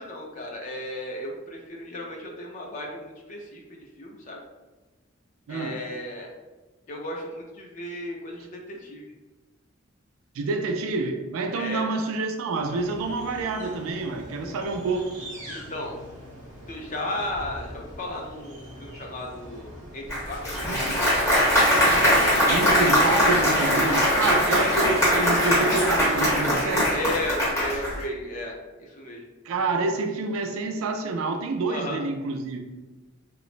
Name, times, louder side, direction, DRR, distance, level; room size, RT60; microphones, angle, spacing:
voice 1, 0.0-4.4 5.5-6.3 6.9-9.1 11.5-11.9 15.5-16.0 16.7-21.0 24.6-24.8 26.9-29.2 31.7-32.0, left 1 dB, 35° left, 0 dB, 0.4 m, -35 dB
voice 2, 5.5-5.8 10.3-15.1 22.5-27.0 29.4-32.6, right 3 dB, 80° right, 5 dB, 0.3 m, -28 dB
sound 1, 12.6-22.4, equal, 35° right, 0.7 m, -39 dB
Applause, 20.1-28.0, equal, 15° left, 1.0 m, -21 dB
2.9 x 2.0 x 2.4 m, 1.2 s
head